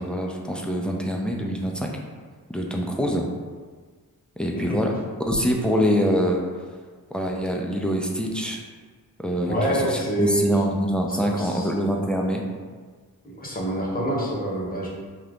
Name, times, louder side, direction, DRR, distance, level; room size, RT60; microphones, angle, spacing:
voice 1, 0.0-1.9 2.5-3.2 4.4-5.0 5.3-6.4 7.1-8.6 9.2-12.4, equal, 5° left, 0 dB, 0.3 m, -24 dB
voice 2, 9.5-10.5 11.1-11.7 13.2-14.9, right 1 dB, 25° left, -3 dB, 0.8 m, -26 dB
2.7 x 2.4 x 3.4 m, 1.5 s
cardioid pair, 65°, 39 cm